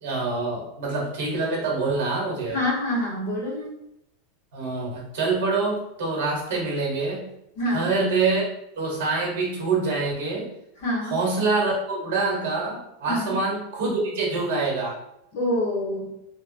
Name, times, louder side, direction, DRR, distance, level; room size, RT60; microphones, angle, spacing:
voice 1, 0.0-2.6 4.5-7.3 7.7-8.5 8.8-10.5 11.1-15.0, right 3 dB, 60° right, -3 dB, 1.1 m, -25 dB
voice 2, 2.5-3.8 7.6-7.9 10.8-11.2 13.1-13.4 15.3-16.1, left 1 dB, 55° left, -4 dB, 1.1 m, -26 dB
2.9 x 2.3 x 2.6 m, 0.80 s
supercardioid pair, 175°, 0 cm